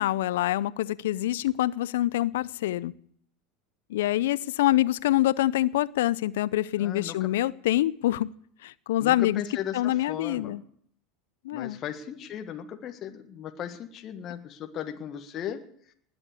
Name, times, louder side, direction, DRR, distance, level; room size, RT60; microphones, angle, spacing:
voice 1, 0.0-2.9 3.9-8.3 8.6-9.4 9.7-10.6 11.4-11.8, left 14 dB, 70° left, 0.6 m, -25 dB
voice 2, 6.8-7.3 9.0-10.6 11.5-15.6, left 9 dB, 45° left, 1.6 m, -37 dB
20.0 x 7.9 x 8.3 m
hypercardioid pair, 85°, 0 cm